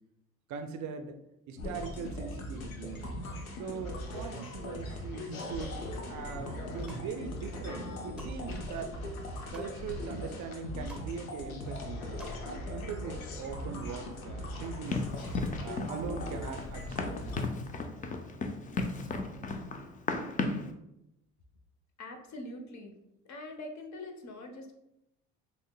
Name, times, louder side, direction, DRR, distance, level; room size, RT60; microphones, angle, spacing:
voice 1, 0.5-1.2 1.5-3.0 3.6-5.8 6.1-9.0 9.5-12.1 12.5-15.0 15.6-17.2, right 6 dB, 45° right, 6 dB, 0.5 m, -41 dB
sound 1, 1.6-17.4, left 1 dB, 90° left, 0.6 m, -39 dB
sound 2, 6.6-7.0 7.6-8.4 8.8-9.7 10.2-10.3 10.5-11.1 11.4-12.4 12.7-12.8, right 2 dB, ahead, 0.7 m, -51 dB
Run, 14.9-20.7, left 3 dB, 20° left, 0.4 m, -35 dB
voice 2, 22.0-22.9 23.3-24.7, left 1 dB, 45° left, 4 dB, 0.8 m, -43 dB
6.1 x 2.1 x 2.2 m, 0.84 s
hypercardioid pair, 55°, 41 cm